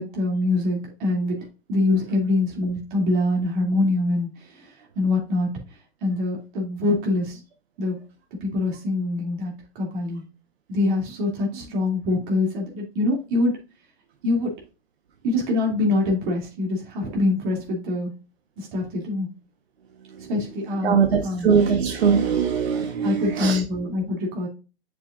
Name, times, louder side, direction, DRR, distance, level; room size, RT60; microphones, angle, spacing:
voice 1, 0.0-1.4 1.7-5.5 6.0-7.4 7.8-8.0 8.4-10.2 10.7-13.5 14.2-14.5 15.2-18.1 18.6-19.3 20.3-21.5 23.0-24.5, left 2 dB, 50° right, -1 dB, 2.8 m, -24 dB
voice 2, 20.8-23.6, right 6 dB, 80° right, 4 dB, 1.2 m, -21 dB
7.8 x 6.3 x 2.5 m, 0.32 s
hypercardioid pair, 130°, 31 cm